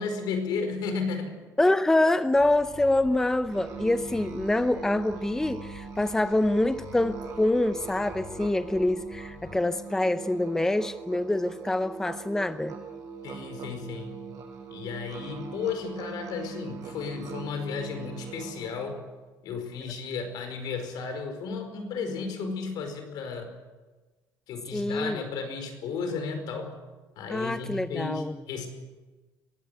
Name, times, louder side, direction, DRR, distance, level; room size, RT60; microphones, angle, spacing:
voice 1, 0.0-1.4 13.2-14.3 14.7-19.0 19.4-23.5 24.5-26.7 27.2-28.7, left 5 dB, 70° left, 7 dB, 5.0 m, -34 dB
voice 2, 1.6-12.7 24.7-25.2 27.3-28.4, left 1 dB, 5° left, 11 dB, 0.7 m, -25 dB
sound 1, 2.3-9.6, left 5 dB, 30° left, 3.5 m, -48 dB
Musical instrument, 3.5-19.0, right 5 dB, 50° right, 6.4 m, -41 dB
21.5 x 16.5 x 9.3 m, 1.3 s
cardioid pair, 145°, 7 cm